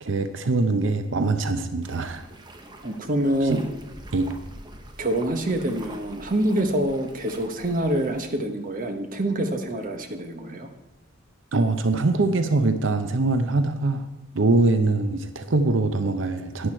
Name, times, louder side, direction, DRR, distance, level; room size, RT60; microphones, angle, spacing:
voice 1, 0.0-2.2 3.5-3.6 4.1-4.3 11.5-14.1 14.3-16.7, right 3 dB, 70° right, 9 dB, 0.6 m, -23 dB
sound 1, 1.8-8.3, right 1 dB, 20° right, 0.8 m, -45 dB
voice 2, 2.8-3.7 5.0-10.7, right 1 dB, 40° right, 6 dB, 1.1 m, -26 dB
11.0 x 9.2 x 4.4 m, 1.0 s
head